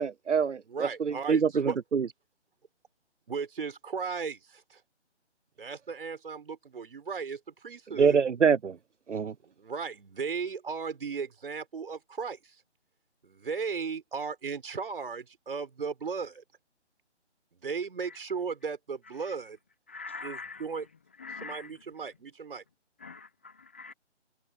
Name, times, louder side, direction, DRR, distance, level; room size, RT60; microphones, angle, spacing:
voice 1, 0.0-0.6 1.1-2.0 8.0-8.7 9.1-9.3, right 6 dB, 80° right, 0.7 m, -25 dB
voice 2, 0.6-1.8 3.3-4.8 5.6-8.2 9.5-12.6 13.2-16.4 17.5-19.6 20.2-20.8 21.4-22.6, right 5 dB, 50° right, 5.9 m, -36 dB
voice 3, 19.9-20.9 21.2-21.7 23.0-23.9, left 4 dB, 10° left, 0.7 m, -44 dB
figure-of-eight pair, 155°, 35 cm